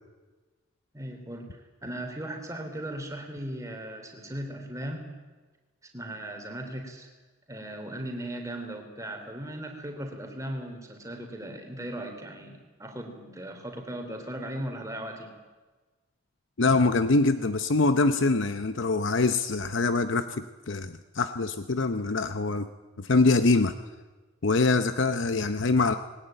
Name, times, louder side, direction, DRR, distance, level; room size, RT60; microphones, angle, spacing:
voice 1, 0.9-5.1 5.9-7.1 7.5-15.3, right 1 dB, 15° right, 4 dB, 3.2 m, -37 dB
voice 2, 16.6-22.7 23.0-23.7 24.4-25.9, left 3 dB, 65° left, 10 dB, 0.8 m, -24 dB
20.5 x 18.5 x 9.0 m, 1.3 s
head